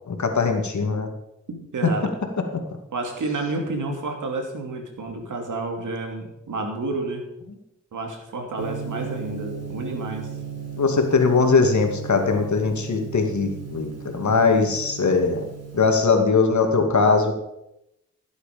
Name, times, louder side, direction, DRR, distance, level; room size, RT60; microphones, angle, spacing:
voice 1, 0.1-1.1 10.8-15.5 15.7-17.3, left 4 dB, 70° left, 4 dB, 2.2 m, -20 dB
voice 2, 1.5-2.1 2.9-7.3 7.9-10.3, right 2 dB, 85° right, 3 dB, 2.6 m, -30 dB
Gong, 8.6-15.9, right 7 dB, 55° right, 4.1 m, -36 dB
15.0 x 8.2 x 5.2 m, 0.86 s
cardioid pair, 45°, 30 cm